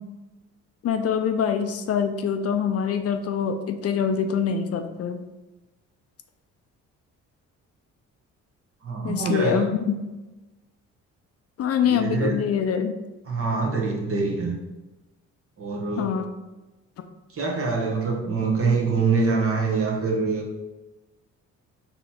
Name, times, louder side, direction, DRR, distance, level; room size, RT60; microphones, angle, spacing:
voice 1, 0.8-5.2 9.0-10.0 11.6-12.9 16.0-16.2, left 7 dB, 50° left, 7 dB, 0.5 m, -24 dB
voice 2, 8.8-9.7 11.8-12.5 13.3-14.5 15.6-16.1 17.3-20.5, right 4 dB, 45° right, -1 dB, 1.2 m, -25 dB
4.1 x 2.9 x 4.3 m, 1.1 s
cardioid pair, 90°, 30 cm